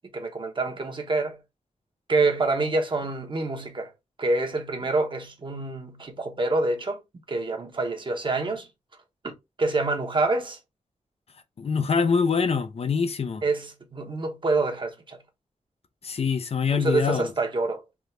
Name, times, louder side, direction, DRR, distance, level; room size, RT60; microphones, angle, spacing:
voice 1, 0.1-1.4 2.1-3.9 4.2-7.0 7.3-8.7 9.2-9.3 9.6-10.6 13.4-15.2 16.7-17.8, right 3 dB, 40° right, 0.9 m, -26 dB
voice 2, 11.6-13.4 16.0-17.3, left 5 dB, 55° left, 0.5 m, -24 dB
3.5 x 2.5 x 4.3 m
wide cardioid pair, 150°, 12 cm